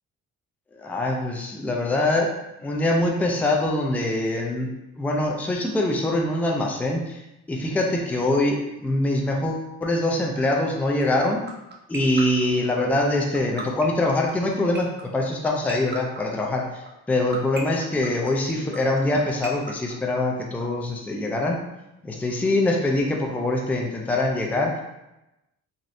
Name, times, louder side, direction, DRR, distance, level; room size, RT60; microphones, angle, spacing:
voice 1, 0.7-2.3 2.6-4.7 5.0-7.2 7.5-11.4 11.9-21.6 22.0-24.7, left 2 dB, 5° left, 0 dB, 0.4 m, -24 dB
sound 1, 11.0-20.6, right 5 dB, 35° right, 0.7 m, -35 dB
3.1 x 2.6 x 2.6 m, 0.94 s
cardioid pair, 90°, 30 cm